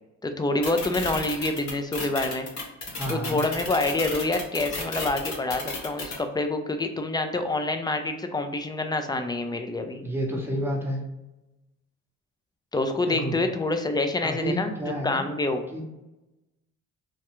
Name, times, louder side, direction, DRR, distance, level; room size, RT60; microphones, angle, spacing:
voice 1, 0.2-2.5 3.1-10.0 12.7-14.7 15.0-15.6, left 2 dB, 15° left, 7 dB, 0.3 m, -27 dB
sound 1, 0.6-6.1, left 3 dB, 65° left, 1.1 m, -32 dB
voice 2, 2.9-3.4 10.0-11.0 13.0-13.4 14.2-15.2 15.7-15.8, equal, 5° right, -1 dB, 0.7 m, -30 dB
3.1 x 2.3 x 2.9 m, 0.99 s
cardioid pair, 90°, 30 cm